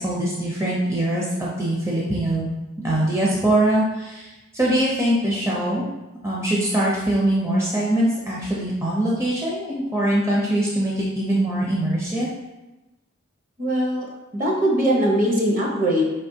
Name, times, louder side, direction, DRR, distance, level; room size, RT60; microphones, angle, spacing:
voice 1, 0.0-2.5 2.8-5.9 6.2-12.3, right 1 dB, 15° right, -5 dB, 0.5 m, -22 dB
voice 2, 13.6-14.1 14.3-16.0, equal, 40° right, -2 dB, 0.9 m, -21 dB
4.3 x 3.3 x 2.7 m, 1.0 s
head